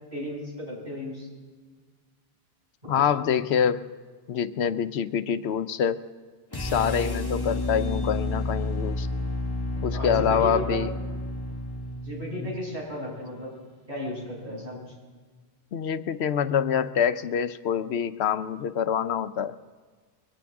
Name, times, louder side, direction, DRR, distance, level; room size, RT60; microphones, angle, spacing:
voice 1, 0.1-1.3 2.8-3.0 9.9-10.8 12.0-13.5 13.9-14.8, left 1 dB, 45° right, -5 dB, 7.0 m, -34 dB
voice 2, 2.9-3.9 4.3-6.0 6.6-9.1 9.8-10.9 12.4-12.5 15.7-19.5, left 8 dB, 80° left, 12 dB, 0.9 m, -26 dB
sound 1, 6.5-12.7, left 2 dB, 20° left, 1.5 m, -30 dB
22.5 x 18.0 x 3.6 m, 1.5 s
omnidirectional pair, 1.1 m